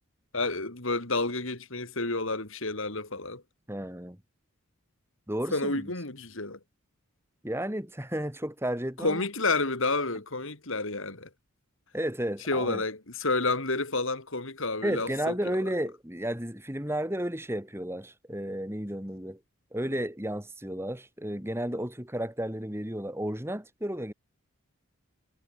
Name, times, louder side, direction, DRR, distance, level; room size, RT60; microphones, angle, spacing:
voice 1, 0.3-3.4 5.5-6.6 9.0-11.3 12.5-15.3, left 3 dB, 60° left, 3.4 m, -30 dB
voice 2, 3.7-4.2 5.3-5.9 7.4-9.3 11.9-12.8 14.8-19.4 19.7-24.1, right 1 dB, 10° right, 3.1 m, -33 dB
head